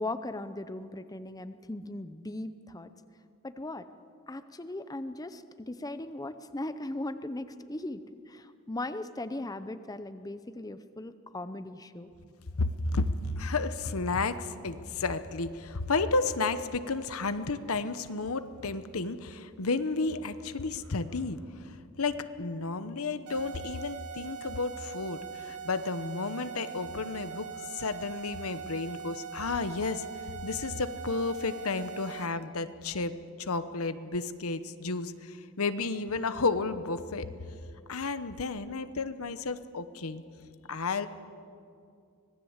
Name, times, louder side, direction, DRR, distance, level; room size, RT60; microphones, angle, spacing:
voice 1, 0.0-2.9 3.4-3.9 4.3-12.1, left 2 dB, 15° left, 11 dB, 0.7 m, -38 dB
voice 2, 12.6-33.1 33.4-37.3 37.9-40.2 40.7-41.1, left 3 dB, 70° left, 12 dB, 1.0 m, -32 dB
sound 1, 23.3-32.3, right 7 dB, 75° right, 1.5 m, -42 dB
25.5 x 18.5 x 8.1 m, 2.4 s
head